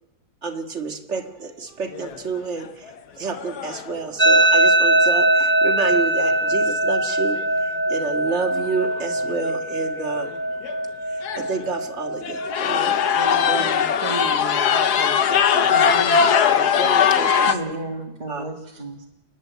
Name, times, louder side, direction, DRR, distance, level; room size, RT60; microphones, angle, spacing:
voice 1, 0.4-1.5 1.8-2.6 3.2-7.4 7.9-10.3 11.5-13.0 13.3-13.7 16.4-17.8 18.3-18.4, right 5 dB, 45° right, 4 dB, 2.1 m, -29 dB
sound 1, 1.9-2.4 2.9-3.0 3.3-3.9 7.1-7.2 8.3-8.4 8.7-9.0 9.5-9.6 10.3-10.4 10.6-10.8 11.2-11.7 12.2-17.6, left 7 dB, 80° left, 1.5 m, -20 dB
sound 2, 4.2-13.2, right 1 dB, 10° right, 0.7 m, -21 dB
voice 2, 13.2-16.0, right 3 dB, 70° right, 5 dB, 2.3 m, -34 dB
voice 3, 15.7-16.3 17.5-19.1, right 2 dB, 30° right, -1 dB, 1.8 m, -33 dB
29.0 x 10.5 x 9.2 m, 0.98 s
omnidirectional pair, 1.7 m